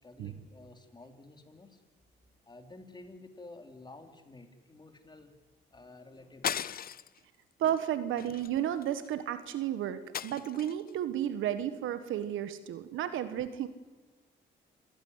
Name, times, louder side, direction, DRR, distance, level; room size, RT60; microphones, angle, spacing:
voice 1, 0.0-1.8 2.5-5.3 5.7-6.9, left 2 dB, 20° left, 6 dB, 3.4 m, -52 dB
sound 1, 6.4-7.2 7.6-7.8 8.2-9.1 10.1-10.9, left 9 dB, 50° left, 0.7 m, -37 dB
voice 2, 7.6-13.7, right 10 dB, 80° right, 12 dB, 1.4 m, -32 dB
28.0 x 15.5 x 9.6 m, 1.3 s
cardioid pair, 90°, 20 cm